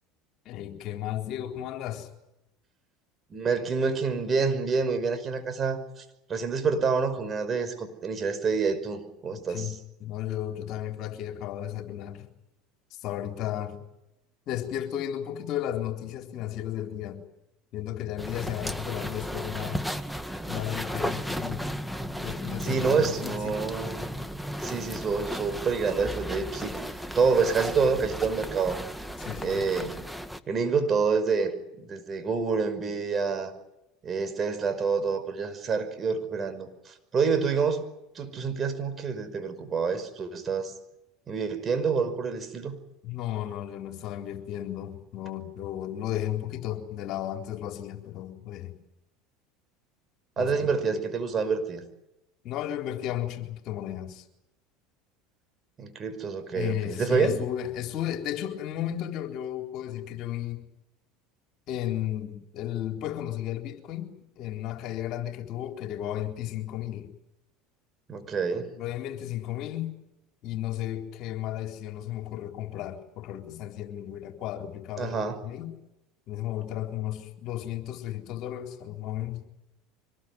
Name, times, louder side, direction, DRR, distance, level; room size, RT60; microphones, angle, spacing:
voice 1, 0.5-2.1 9.3-12.3 12.9-13.8 14.5-17.2 17.7-19.9 20.5-21.7 22.2-23.6 29.2-29.7 43.0-48.8 50.4-50.7 52.4-54.2 56.5-60.7 61.7-67.1 68.8-70.0 70.4-75.2 75.4-75.8 76.3-79.4, left 12 dB, 55° left, 4 dB, 4.0 m, -34 dB
voice 2, 3.3-6.0 6.3-9.7 22.6-24.3 24.6-28.8 29.4-29.9 30.5-31.5 31.8-33.5 34.0-37.8 38.2-40.7 41.3-42.8 50.4-51.8 55.8-57.4 68.1-68.7 75.0-75.4, right 5 dB, 35° right, 9 dB, 5.5 m, -27 dB
sound 1, 18.2-30.4, equal, ahead, 1.8 m, -35 dB
25.0 x 20.5 x 9.4 m, 0.88 s
hypercardioid pair, 80°, 0 cm